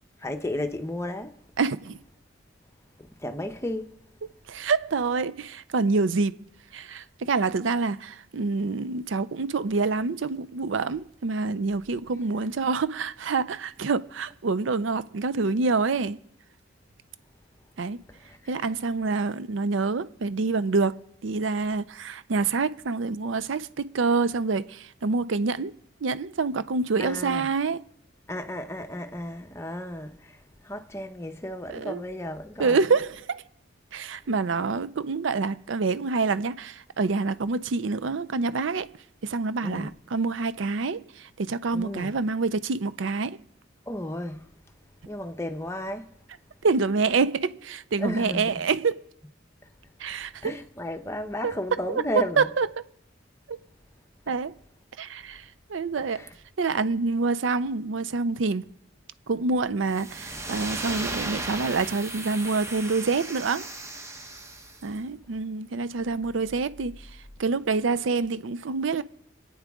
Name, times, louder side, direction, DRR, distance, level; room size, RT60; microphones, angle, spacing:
voice 1, 0.2-1.3 3.2-3.9 18.3-18.4 27.0-27.5 28.3-30.1 30.6-32.8 39.6-39.9 41.7-42.1 43.9-44.4 45.1-46.0 48.0-48.5 50.4-52.5, left 1 dB, 15° left, 0.8 m, -33 dB
voice 2, 1.6-2.0 4.5-6.4 6.7-16.2 17.8-18.0 18.5-25.7 26.0-27.8 31.7-32.0 32.6-33.4 33.9-38.9 39.2-43.4 46.6-49.0 50.0-50.5 51.4-51.6 51.9-52.0 52.4-52.7 53.5-53.6 54.3-54.5 55.0-55.4 55.7-56.2 56.6-58.7 59.3-63.7 64.8-67.0 67.4-69.0, right 4 dB, 70° right, 0.5 m, -27 dB
sound 1, 59.9-64.8, right 2 dB, 15° right, 0.9 m, -36 dB
26.0 x 9.4 x 3.6 m
head